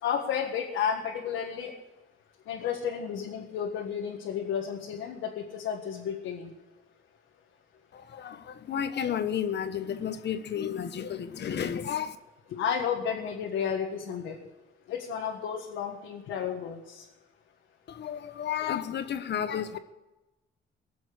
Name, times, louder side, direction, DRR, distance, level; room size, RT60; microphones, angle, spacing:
voice 1, 0.0-1.7 2.5-6.5 12.5-14.4 14.9-17.0, left 7 dB, 90° left, 1.7 m, -32 dB
voice 2, 7.9-12.2 17.9-19.8, left 8 dB, 60° left, 1.2 m, -32 dB
19.0 x 7.1 x 8.4 m
cardioid pair, 90°, 20 cm